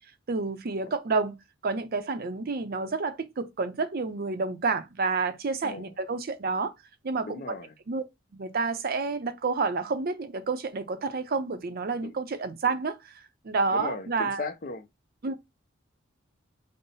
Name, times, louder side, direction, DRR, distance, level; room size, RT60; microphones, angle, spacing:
voice 1, 0.3-1.4 1.6-6.7 7.0-7.6 7.9-8.0 8.3-14.4 15.2-15.4, right 4 dB, 50° right, 0.5 m, -29 dB
voice 2, 5.6-5.9 7.2-7.7 11.9-12.1 13.7-14.9, left 3 dB, 45° left, 0.5 m, -37 dB
5.4 x 2.0 x 3.9 m
head